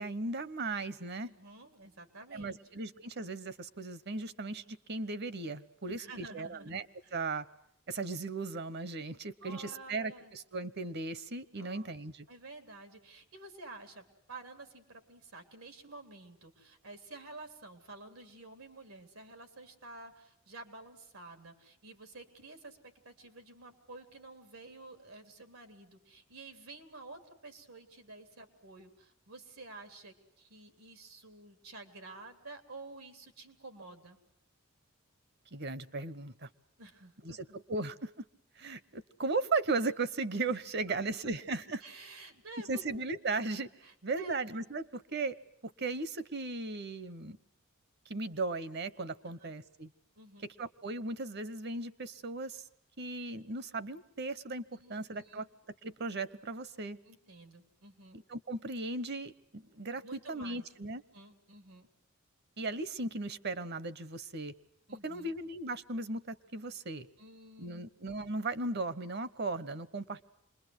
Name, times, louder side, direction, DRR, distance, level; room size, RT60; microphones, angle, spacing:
voice 1, 0.0-1.3 2.3-6.8 7.1-7.4 7.9-12.2 35.5-36.5 37.2-38.2 38.6-41.8 42.7-43.7 44.0-45.4 45.6-47.4 48.1-49.9 50.4-52.6 53.0-54.6 54.9-55.5 55.8-57.0 58.3-61.0 62.6-64.5 65.0-67.1 67.6-70.2, right 3 dB, 50° right, 16 dB, 1.0 m, -37 dB
voice 2, 1.2-2.6 5.9-6.7 7.0-7.2 9.4-10.3 11.6-11.9 12.3-34.2 36.8-37.4 41.8-42.8 43.8-44.4 49.3-49.5 50.2-50.5 54.7-55.5 57.1-58.2 60.0-60.7 61.1-61.9 64.9-65.3 67.2-67.9, right 2 dB, 90° right, 7 dB, 3.6 m, -51 dB
27.0 x 22.0 x 8.1 m, 0.74 s
head